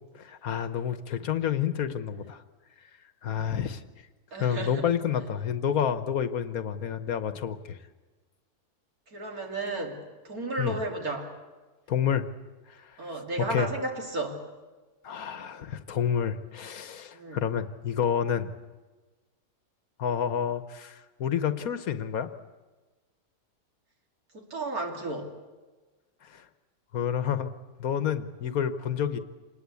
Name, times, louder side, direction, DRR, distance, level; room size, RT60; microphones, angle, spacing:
voice 1, 0.1-2.4 3.2-3.8 4.4-7.8 10.6-10.8 11.9-12.2 12.7-13.0 13.4-13.7 15.0-18.5 20.0-22.3 26.2-26.4 26.9-27.5 27.8-29.2, left 8 dB, 65° left, 11 dB, 1.4 m, -29 dB
voice 2, 4.3-4.8 9.1-10.0 10.2-11.3 13.0-14.4 17.1-17.4 24.3-25.3, right 2 dB, 65° right, 2 dB, 3.2 m, -33 dB
26.5 x 20.0 x 8.4 m, 1.3 s
omnidirectional pair, 1.7 m